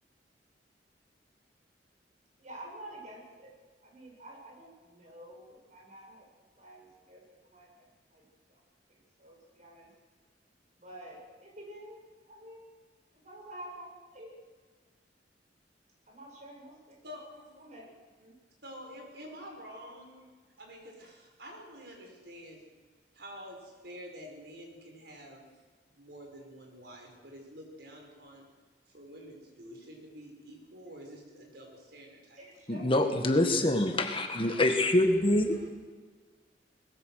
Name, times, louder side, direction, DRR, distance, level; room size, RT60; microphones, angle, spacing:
voice 1, 2.4-3.5 3.8-6.3 6.6-7.9 8.1-8.2 8.5-8.6 8.9-9.9 10.7-12.0 12.3-12.7 13.2-14.3 16.1-17.0 17.6-17.9 18.2-18.3 32.4-33.3 33.5-34.0 34.4-34.7, right 1 dB, 45° right, -1 dB, 7.6 m, -49 dB
voice 2, 17.0-17.6 18.6-20.2 20.6-22.6 23.1-25.4 25.9-28.4 28.9-32.4 34.7-35.7, equal, 65° right, 1 dB, 5.8 m, -48 dB
voice 3, 32.7-35.7, left 1 dB, 30° left, 5 dB, 1.7 m, -25 dB
22.5 x 20.5 x 6.6 m, 1.4 s
head